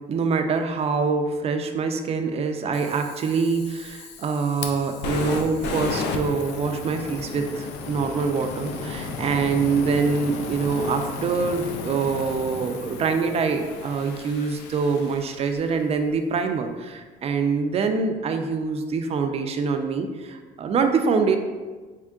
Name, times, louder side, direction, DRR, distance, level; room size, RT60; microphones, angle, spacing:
voice 1, 0.1-21.4, right 5 dB, 35° right, 6 dB, 0.4 m, -25 dB
Fire, 2.7-15.8, left 4 dB, 80° left, 0.5 m, -34 dB
3.6 x 3.5 x 2.3 m, 1.3 s
cardioid pair, 110°, 17 cm